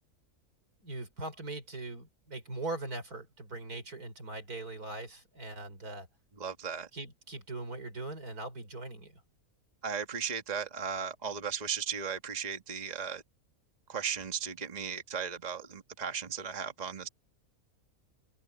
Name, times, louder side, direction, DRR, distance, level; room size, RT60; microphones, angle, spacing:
voice 1, 0.8-6.1 6.9-9.1, right 2 dB, 80° right, 5.4 m, -40 dB
voice 2, 6.4-6.9 9.8-13.2 13.9-17.1, right 7 dB, 30° right, 1.6 m, -36 dB
omnidirectional pair, 1.6 m